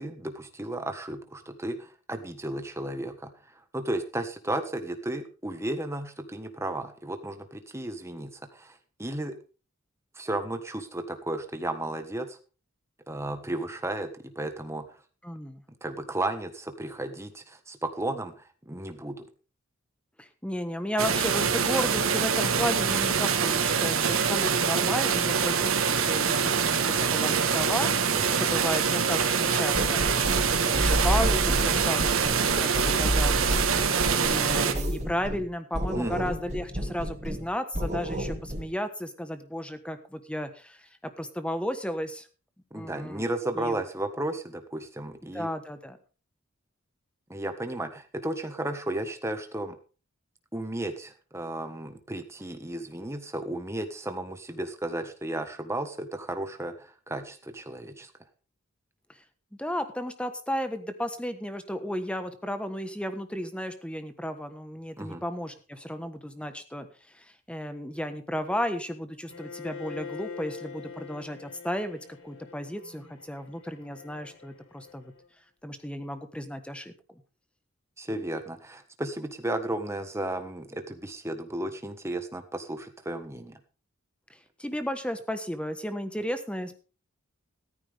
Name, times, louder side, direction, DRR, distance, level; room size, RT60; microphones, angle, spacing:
voice 1, 0.0-3.3 3.7-9.4 10.1-12.4 13.1-14.9 15.8-19.3 28.1-28.4 35.9-36.3 42.7-45.5 47.3-49.8 50.5-58.1 65.0-65.2 78.0-83.6, right 1 dB, 15° right, 7 dB, 1.4 m, -34 dB
voice 2, 15.2-15.6 20.2-27.9 28.4-30.0 30.5-33.6 34.1-40.9 41.2-42.3 42.7-43.3 43.6-43.8 45.3-46.0 59.6-66.9 67.1-75.1 75.6-76.9 78.1-78.2 84.6-86.8, equal, 5° left, 9 dB, 1.2 m, -33 dB
sound 1, 21.0-34.7, right 6 dB, 75° right, 1.4 m, -25 dB
sound 2, 29.7-35.5 35.7-37.5 37.7-38.7, equal, 35° right, 2.4 m, -30 dB
Bowed string instrument, 69.3-75.3, left 6 dB, 80° left, 4.0 m, -44 dB
14.5 x 13.5 x 3.5 m, 0.36 s
head